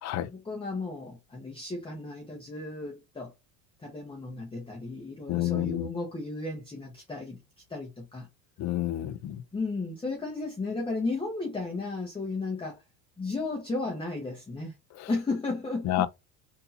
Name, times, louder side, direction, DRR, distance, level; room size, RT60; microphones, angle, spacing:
voice 1, 0.3-3.3 3.8-7.4 7.7-8.3 9.5-12.8 13.2-14.7 15.1-16.1, left 3 dB, 10° left, 1.1 m, -34 dB
voice 2, 5.3-5.9 8.6-9.4 15.0-15.1 15.8-16.1, left 14 dB, 40° left, 0.5 m, -29 dB
3.6 x 2.9 x 2.6 m
supercardioid pair, 105°, 44 cm